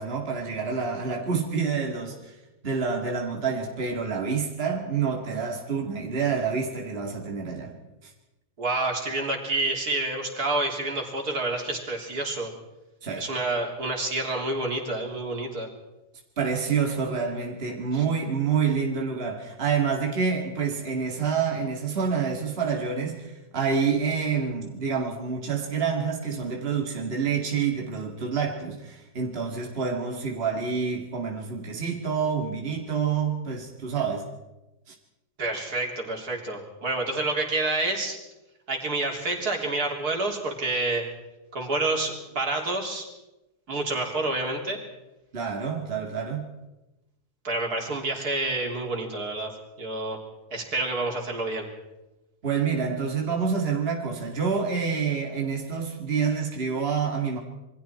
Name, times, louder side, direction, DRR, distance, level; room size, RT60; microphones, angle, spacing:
voice 1, 0.0-2.4 2.6-7.8 8.0-8.1 13.0-13.2 16.4-34.3 34.9-35.0 45.3-46.5 52.4-57.4, right 6 dB, 35° right, 2.5 m, -27 dB
voice 2, 8.6-12.5 13.2-15.7 35.4-38.2 38.7-41.0 41.5-43.0 43.7-44.8 47.4-49.5 49.8-50.2 50.5-51.7, right 2 dB, 70° right, 3.9 m, -28 dB
27.5 x 22.5 x 4.4 m
omnidirectional pair, 1.7 m